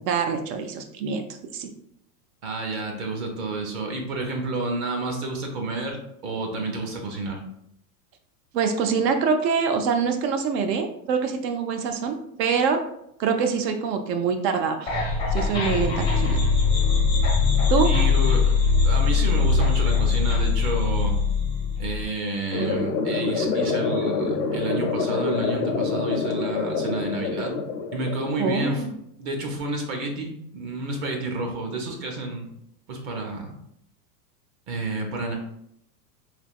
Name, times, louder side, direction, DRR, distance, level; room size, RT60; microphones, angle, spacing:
voice 1, 0.1-1.3 1.5-1.7 8.5-12.8 13.2-14.9 15.3-16.4 17.7-17.9 28.4-28.9, right 5 dB, 80° right, 6 dB, 0.7 m, -24 dB
voice 2, 2.4-7.4 17.8-18.5 18.8-21.1 21.8-27.6 27.9-28.9 29.2-32.5 32.9-33.5 34.7-35.3, right 2 dB, 35° right, 2 dB, 0.6 m, -30 dB
sound 1, 14.9-22.0, left 5 dB, 10° left, 0.4 m, -21 dB
sound 2, 22.5-28.5, left 4 dB, 80° left, 0.7 m, -26 dB
3.3 x 3.0 x 2.4 m, 0.74 s
supercardioid pair, 135°, 50 cm